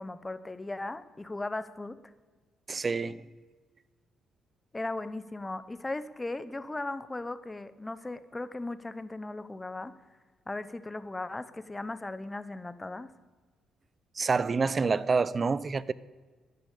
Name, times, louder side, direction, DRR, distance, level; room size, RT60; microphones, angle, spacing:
voice 1, 0.0-2.0 4.7-9.9 10.5-13.1, left 2 dB, 15° left, 0.9 m, -37 dB
voice 2, 2.7-3.2 14.2-15.9, right 4 dB, 35° right, 0.6 m, -27 dB
11.5 x 11.0 x 8.4 m
cardioid pair, 90°, 0 cm